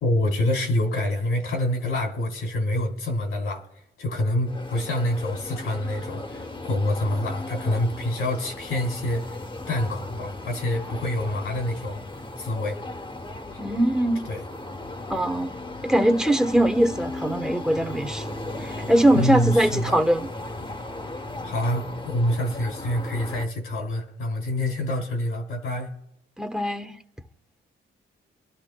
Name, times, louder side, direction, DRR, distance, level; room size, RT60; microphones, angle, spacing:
voice 1, 0.0-3.6 4.0-9.4 9.7-12.0 12.4-12.8 14.3-14.4 19.1-20.0 21.4-25.9, left 1 dB, 85° left, 2.5 m, -26 dB
sound 1, 4.5-23.5, left 2 dB, 25° left, 1.1 m, -36 dB
voice 2, 13.6-14.3 15.1-15.5 15.8-18.3 18.6-20.3 26.4-27.0, right 1 dB, 5° right, 1.1 m, -22 dB
24.5 x 12.5 x 2.3 m
cardioid pair, 85°, 21 cm